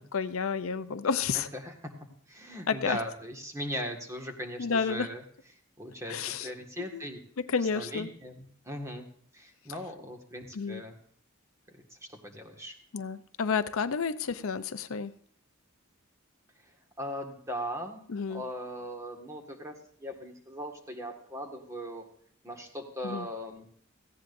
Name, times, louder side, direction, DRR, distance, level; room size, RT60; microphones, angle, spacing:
voice 1, 0.0-1.5 2.7-3.0 4.6-5.1 6.1-6.5 6.8-7.1 7.4-8.1 10.5-10.8 12.9-15.1 18.1-18.4 23.0-23.3, left 5 dB, 70° left, 12 dB, 0.6 m, -31 dB
voice 2, 1.5-1.9 2.3-5.2 5.8-7.2 7.7-9.1 9.3-10.9 11.7-11.8 12.2-12.8 17.0-18.0 18.3-22.0 22.4-23.7, equal, 15° right, 3 dB, 1.8 m, -39 dB
18.0 x 15.5 x 2.6 m, 0.63 s
head